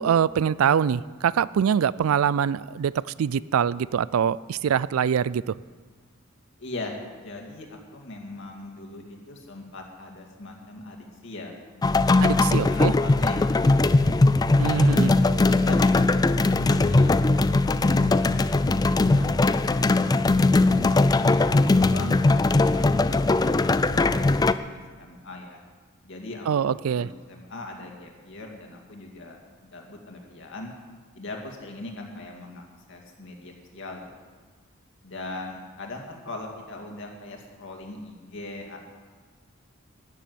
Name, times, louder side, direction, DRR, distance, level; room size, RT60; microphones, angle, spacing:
voice 1, 0.0-5.5 12.2-12.9 14.6-15.1 26.5-27.1, right 8 dB, 80° right, 20 dB, 0.4 m, -24 dB
voice 2, 6.6-14.0 14.6-19.6 21.7-22.2 22.7-25.6 26.0-29.4 29.7-30.7 31.1-34.1 35.0-38.8, left 2 dB, 60° left, 1 dB, 2.2 m, -40 dB
sound 1, 11.8-24.5, left 2 dB, 20° left, 0.3 m, -20 dB
13.5 x 7.0 x 9.3 m, 1.4 s
head